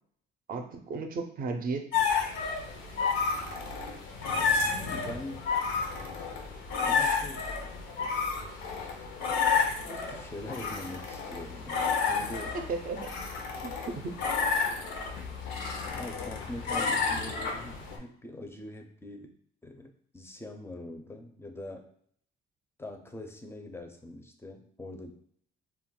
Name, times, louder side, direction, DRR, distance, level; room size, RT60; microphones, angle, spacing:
voice 1, 0.5-1.9 12.5-13.1 13.6-14.3, right 4 dB, 45° right, 6 dB, 0.5 m, -35 dB
sound 1, 1.9-18.0, left 5 dB, 85° left, 0.6 m, -31 dB
voice 2, 4.5-5.4 6.8-7.6 8.0-8.6 9.9-12.6 15.9-19.3 19.6-21.9 22.8-25.1, left 1 dB, 10° left, 5 dB, 0.4 m, -43 dB
2.3 x 2.1 x 3.7 m, 0.62 s
cardioid pair, 90°, 20 cm